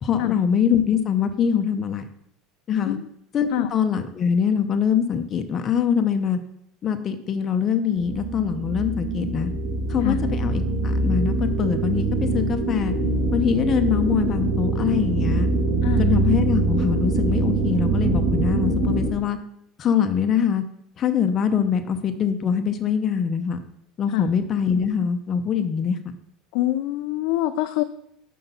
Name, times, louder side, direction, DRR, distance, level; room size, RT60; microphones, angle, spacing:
voice 1, 0.0-2.1 2.7-3.0 3.3-6.4 6.8-9.5 9.9-12.9 13.3-15.5 16.0-19.4 19.8-20.6 21.0-23.6 24.0-26.0, left 7 dB, 40° left, 7 dB, 0.7 m, -23 dB
sound 1, 7.9-19.1, right 3 dB, 55° right, 1.5 m, -23 dB
voice 2, 26.5-27.8, left 14 dB, 70° left, 9 dB, 0.4 m, -25 dB
5.8 x 4.6 x 5.5 m, 0.73 s
supercardioid pair, 110°, 0 cm